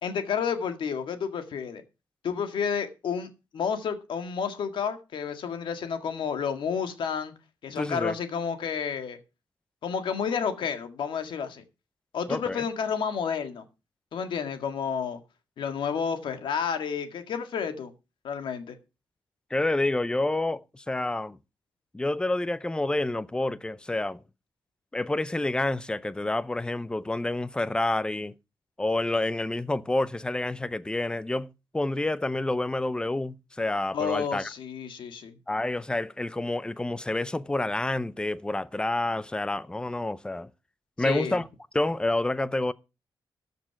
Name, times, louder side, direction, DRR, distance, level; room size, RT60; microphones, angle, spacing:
voice 1, 0.0-1.8 2.2-7.3 7.6-9.2 9.8-11.6 12.1-13.6 14.1-15.2 15.6-17.9 18.2-18.8 33.9-35.3 41.0-41.4, left 6 dB, 85° left, 1.9 m, -30 dB
voice 2, 7.8-8.1 12.3-12.6 19.5-21.4 21.9-24.2 24.9-28.3 28.8-31.5 31.7-34.5 35.5-40.5 41.0-41.5 41.7-42.7, left 2 dB, 10° left, 0.6 m, -28 dB
14.0 x 6.7 x 5.8 m
wide cardioid pair, 150°, 8 cm